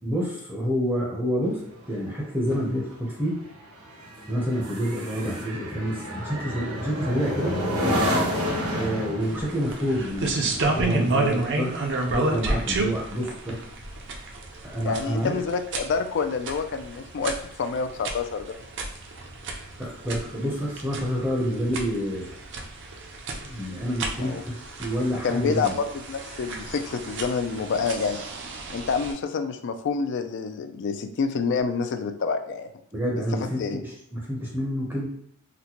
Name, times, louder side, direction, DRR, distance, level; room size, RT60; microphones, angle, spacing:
voice 1, 0.0-3.4 4.3-7.6 8.7-11.7 12.1-13.6 14.1-14.2 14.6-15.4 19.8-22.3 23.4-25.8 32.9-35.1, equal, 10° right, -3 dB, 0.6 m, -28 dB
sound 1, 1.4-13.2 13.6-13.9, equal, 85° right, 1.0 m, -31 dB
sound 2, 9.2-29.1, right 2 dB, 55° right, 0.5 m, -31 dB
voice 2, 14.8-18.6 24.2-24.4 25.2-28.2 28.7-32.7 33.4-33.8, left 5 dB, 55° left, 8 dB, 0.3 m, -28 dB
3.9 x 2.1 x 2.9 m, 0.71 s
head